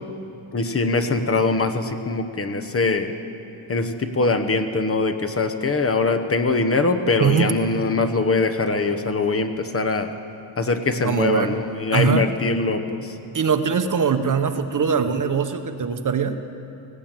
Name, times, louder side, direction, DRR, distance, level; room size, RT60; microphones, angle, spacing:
voice 1, 0.5-3.1 3.7-10.1 10.6-13.1, left 3 dB, 30° left, 7 dB, 1.0 m, -22 dB
voice 2, 11.0-11.5 11.9-12.3 13.3-16.4, right 6 dB, 40° right, 8 dB, 1.0 m, -21 dB
18.0 x 16.5 x 8.9 m, 2.7 s
wide cardioid pair, 165°, 47 cm